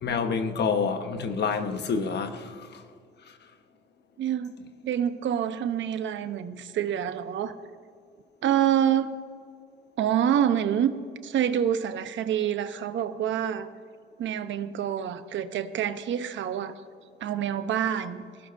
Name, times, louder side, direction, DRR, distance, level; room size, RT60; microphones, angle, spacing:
voice 1, 0.0-2.8 3.3-3.4, left 5 dB, 60° left, 1.2 m, -28 dB
voice 2, 4.2-4.5 4.8-7.5 8.4-9.2 10.0-10.9 11.2-13.7 14.2-16.7 17.2-18.2, right 9 dB, 70° right, 0.9 m, -27 dB
19.5 x 16.0 x 2.6 m
cardioid pair, 90°, 20 cm